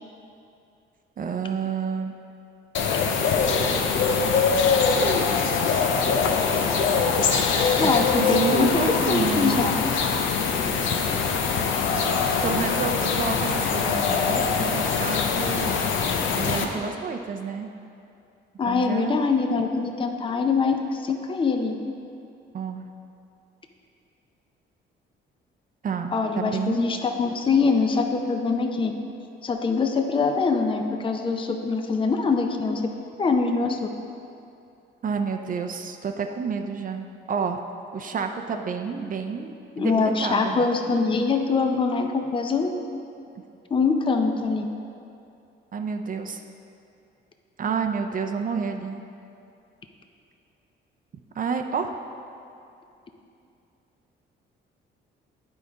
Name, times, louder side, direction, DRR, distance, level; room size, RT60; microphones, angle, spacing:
voice 1, 1.2-2.1 8.2-9.7 12.4-15.7 16.4-17.7 18.7-19.2 22.5-22.9 25.8-26.9 35.0-37.6 37.9-40.7 45.7-46.4 47.6-49.0 51.4-51.9, right 5 dB, 45° right, 5 dB, 0.5 m, -29 dB
sound 1, 2.7-16.6, left 5 dB, 80° left, 0.7 m, -23 dB
voice 2, 7.8-8.7 9.1-9.7 18.6-21.8 26.1-28.9 29.4-32.8 33.2-33.8 39.8-42.7 43.7-44.7, left 4 dB, 25° left, 5 dB, 0.6 m, -23 dB
9.4 x 4.9 x 3.9 m, 2.6 s
cardioid pair, 90°, 20 cm